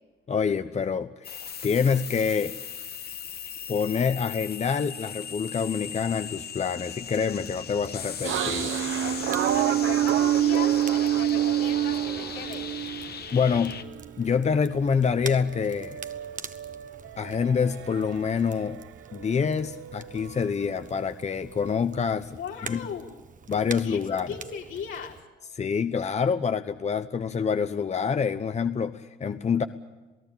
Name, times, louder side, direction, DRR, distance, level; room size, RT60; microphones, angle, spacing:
voice 1, 0.3-2.5 3.7-8.7 13.3-13.8 14.2-16.0 17.2-18.8 19.1-22.4 22.7-22.8 23.5-24.3 25.6-29.6, left 6 dB, 35° left, 10 dB, 1.0 m, -26 dB
sound 1, 1.2-13.8, left 7 dB, 50° left, 1.7 m, -38 dB
Crackle, 7.0-25.2, right 6 dB, 40° right, 1.4 m, -46 dB
sound 2, 8.2-14.2 14.6-18.8 19.1-21.7, right 11 dB, 75° right, 1.1 m, -28 dB
voice 2, 9.0-12.7 22.3-23.1 23.8-25.2, left 7 dB, 75° left, 0 dB, 5.1 m, -38 dB
28.0 x 17.5 x 8.9 m, 1.2 s
cardioid pair, 90°, 20 cm